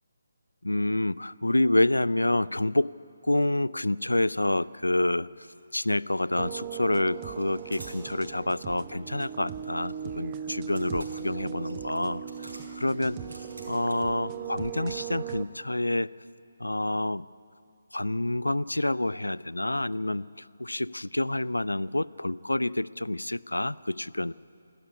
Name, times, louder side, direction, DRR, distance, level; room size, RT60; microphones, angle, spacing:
voice 1, 0.6-2.9 3.2-5.5 5.7-13.2 13.7-16.1 16.6-17.2 17.9-24.3, left 1 dB, 80° left, 20 dB, 0.5 m, -28 dB
sound 1, 5.5-5.6 5.9-6.6 7.3-8.0 9.3-14.2, right 2 dB, 65° right, 5.6 m, -50 dB
sound 2, 6.4-15.4, right 8 dB, 20° right, 1.1 m, -38 dB
28.0 x 12.5 x 9.9 m, 2.6 s
figure-of-eight pair, 145°, 0 cm